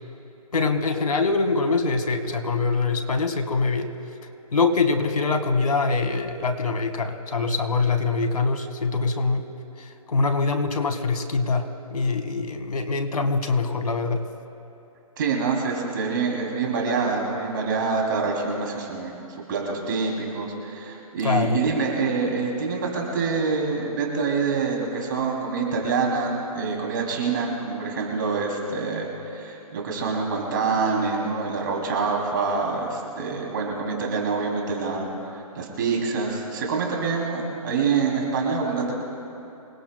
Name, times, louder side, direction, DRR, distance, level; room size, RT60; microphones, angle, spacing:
voice 1, 0.5-3.9 4.5-9.4 9.8-14.2 21.2-21.6, left 4 dB, 90° left, 6 dB, 1.8 m, -24 dB
voice 2, 15.2-19.2 19.5-35.1 35.5-38.9, right 4 dB, 35° right, -1 dB, 3.0 m, -26 dB
27.0 x 19.0 x 2.3 m, 2.9 s
hypercardioid pair, 170°, 19 cm